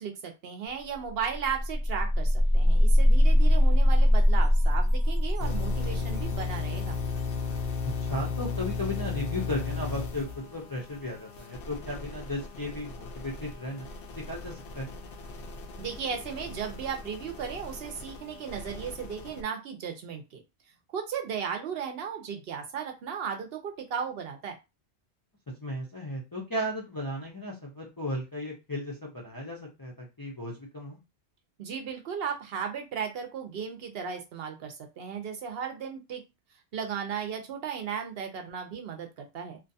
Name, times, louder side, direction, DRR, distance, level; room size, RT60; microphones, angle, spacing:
voice 1, 0.0-7.0 15.8-20.4 20.9-24.5 31.6-36.2 36.7-39.6, right 7 dB, 65° right, 4 dB, 0.8 m, -35 dB
sound 1, 0.7-0.8 1.1-7.9, left 1 dB, 35° right, 0.9 m, -23 dB
sound 2, 5.4-19.4, left 4 dB, 65° left, 0.7 m, -36 dB
voice 2, 8.1-13.9 14.3-15.0 25.6-31.0, left 1 dB, 30° left, -3 dB, 0.4 m, -35 dB
2.5 x 2.2 x 2.6 m, 0.25 s
omnidirectional pair, 1.1 m